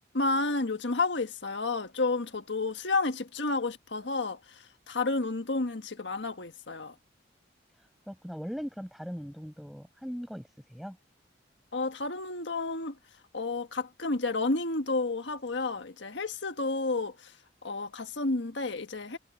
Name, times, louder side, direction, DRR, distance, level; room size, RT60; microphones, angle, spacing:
voice 1, 0.1-4.4 4.9-6.9 11.7-12.9 13.3-17.3 17.6-19.2, left 3 dB, 80° left, 1.5 m, -31 dB
voice 2, 8.1-11.0, equal, ahead, 7.4 m, -39 dB
head